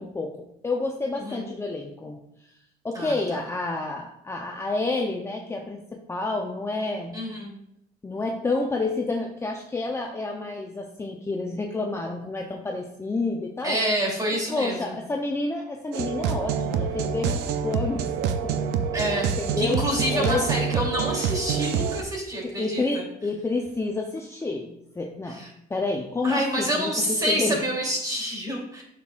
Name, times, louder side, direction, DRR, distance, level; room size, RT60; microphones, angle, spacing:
voice 1, 0.0-2.2 2.8-7.2 8.0-13.8 14.5-18.1 18.4-18.5 19.4-19.8 20.1-20.5 22.4-25.4 25.7-27.6, left 3 dB, 15° left, 1 dB, 0.7 m, -29 dB
voice 2, 7.1-7.5 13.6-15.0 18.9-19.3 19.6-23.0 25.3-25.5 26.2-28.8, equal, 20° right, -2 dB, 3.0 m, -27 dB
sound 1, 15.9-22.0, right 7 dB, 80° right, 0.6 m, -27 dB
9.1 x 6.2 x 2.5 m, 0.76 s
cardioid pair, 110°, 17 cm